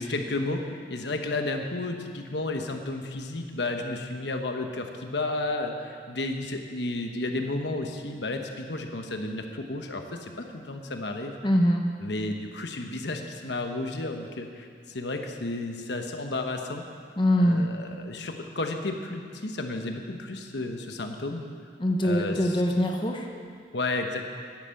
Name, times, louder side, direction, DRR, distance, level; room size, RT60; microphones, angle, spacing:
voice 1, 0.0-11.4 12.0-16.8 17.4-21.5 22.0-22.5 23.7-24.3, left 2 dB, 70° left, 4 dB, 1.1 m, -32 dB
voice 2, 11.4-11.9 17.2-17.7 21.8-23.3, equal, 25° left, 2 dB, 0.9 m, -23 dB
10.5 x 10.0 x 7.8 m, 2.2 s
head